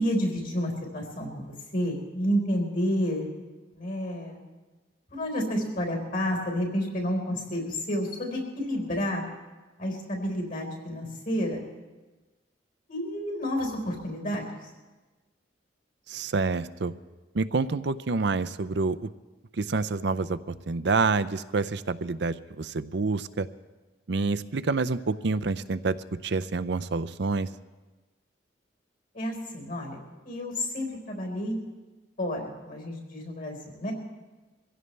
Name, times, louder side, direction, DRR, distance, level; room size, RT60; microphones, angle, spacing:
voice 1, 0.0-3.3 3.7-4.4 5.1-9.2 9.8-11.6 12.9-14.5 29.1-30.0 30.2-31.6 32.2-33.9, equal, 50° left, 1 dB, 4.5 m, -30 dB
voice 2, 16.1-16.9 17.3-19.1 19.6-20.4 20.7-23.5 24.1-26.0 26.2-27.5, right 4 dB, 65° right, 14 dB, 0.6 m, -27 dB
24.0 x 16.0 x 3.3 m, 1.2 s
head